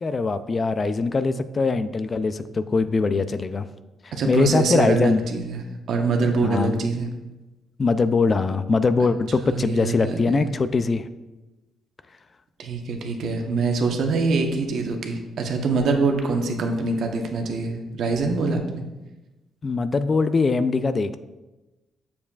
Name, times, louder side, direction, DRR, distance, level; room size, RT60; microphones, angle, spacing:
voice 1, 0.0-3.7 4.3-5.2 6.4-6.8 7.8-11.1 19.6-21.2, left 4 dB, 35° left, 12 dB, 0.3 m, -22 dB
voice 2, 4.1-7.1 9.4-10.5 12.6-18.8, right 3 dB, 70° right, 3 dB, 1.0 m, -24 dB
7.1 x 7.1 x 2.4 m, 1.1 s
cardioid pair, 90°, 0 cm